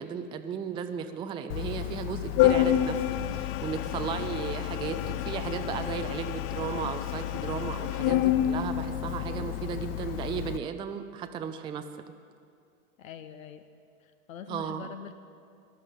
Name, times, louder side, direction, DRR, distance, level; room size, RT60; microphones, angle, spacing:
voice 1, 0.0-11.9 14.5-14.9, right 7 dB, 10° right, 8 dB, 0.4 m, -35 dB
Organ, 1.5-10.6, left 12 dB, 45° left, 0.6 m, -29 dB
voice 2, 13.0-13.6 14.3-15.1, left 8 dB, 70° left, 9 dB, 1.0 m, -43 dB
18.0 x 11.5 x 5.0 m, 2.3 s
figure-of-eight pair, 90°, 43 cm